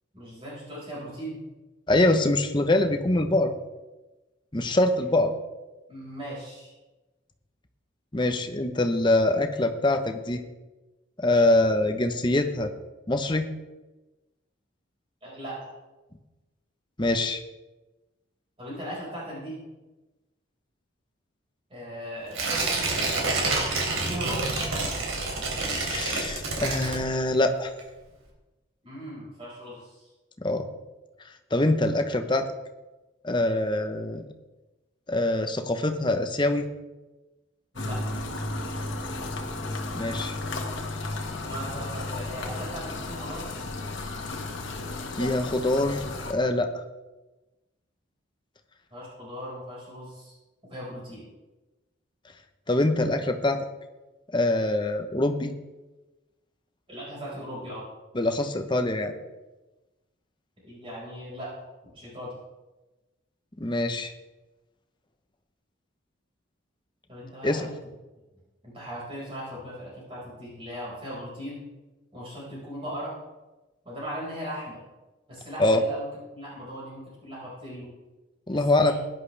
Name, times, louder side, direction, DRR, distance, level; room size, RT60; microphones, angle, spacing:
voice 1, 0.1-1.4 5.9-6.7 15.2-15.6 18.6-19.6 21.7-22.6 24.1-24.6 28.8-30.1 37.7-38.0 41.4-43.4 48.9-50.3 50.7-51.3 56.9-57.8 60.6-61.5 61.8-62.3 67.1-67.8 68.6-71.6 72.1-73.1 73.9-74.8 75.3-77.9 78.5-78.9, equal, 25° right, -7 dB, 5.1 m, -38 dB
voice 2, 1.9-3.5 4.5-5.3 8.1-10.4 11.2-12.7 13.1-13.5 17.0-17.4 25.6-27.7 30.4-30.7 31.5-32.5 33.2-34.2 35.1-36.7 39.9-40.4 45.2-46.7 52.7-53.7 54.3-55.5 58.1-59.1 63.6-64.1 67.4-67.7 75.6-75.8 78.5-78.9, left 2 dB, 20° left, 6 dB, 0.8 m, -24 dB
Tearing, 22.3-27.4 27.8-27.9, right 3 dB, 80° right, 3.2 m, -28 dB
sound 1, 37.8-46.3, left 2 dB, 65° left, 1.5 m, -33 dB
16.5 x 11.0 x 3.4 m, 1.1 s
head